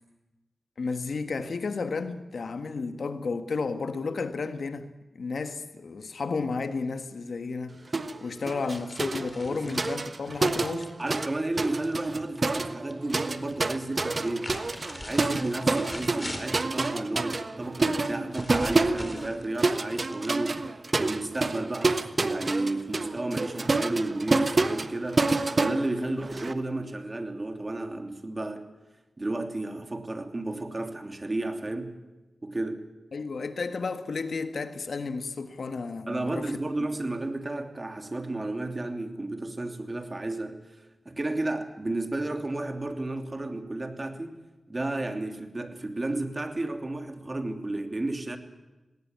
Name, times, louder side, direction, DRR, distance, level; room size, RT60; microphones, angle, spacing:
voice 1, 0.8-4.9 5.1-7.8 8.2-10.9 26.0-26.2 33.1-36.5, left 4 dB, 80° left, 1.5 m, -32 dB
sound 1, 7.9-8.2 8.5-11.3 11.6-26.5, right 3 dB, 55° right, 1.3 m, -28 dB
sound 2, 8.7-12.6 12.9-13.5 14.1-16.8 18.0-20.7, left 1 dB, 20° left, 4.4 m, -42 dB
voice 2, 11.0-14.5 15.0-20.7 21.0-28.7 29.2-31.9 32.4-32.9 36.1-40.6 41.0-44.4 44.7-48.4, right 2 dB, 40° right, 2.9 m, -32 dB
18.5 x 18.5 x 9.5 m
cardioid pair, 40°, 0 cm